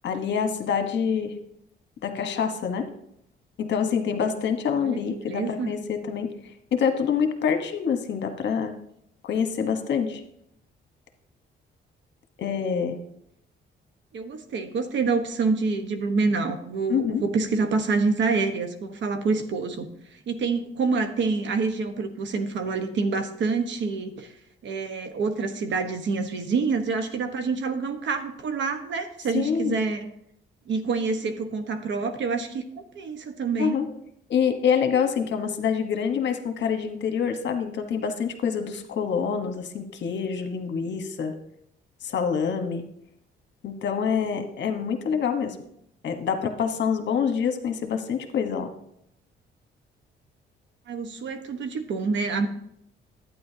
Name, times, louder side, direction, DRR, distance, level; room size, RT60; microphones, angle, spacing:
voice 1, 0.0-1.3 2.0-2.9 3.6-8.7 9.2-10.2 12.4-13.0 16.9-17.2 29.3-29.8 33.6-33.9 34.3-41.3 42.0-42.9 43.6-45.6 46.0-48.7, left 7 dB, 65° left, 6 dB, 1.2 m, -26 dB
voice 2, 5.3-5.7 14.1-19.9 20.3-24.3 24.6-30.1 30.7-32.6 32.9-33.8 50.9-52.5, right 4 dB, 65° right, 7 dB, 1.2 m, -27 dB
11.5 x 9.3 x 2.8 m, 0.74 s
cardioid pair, 90°, 20 cm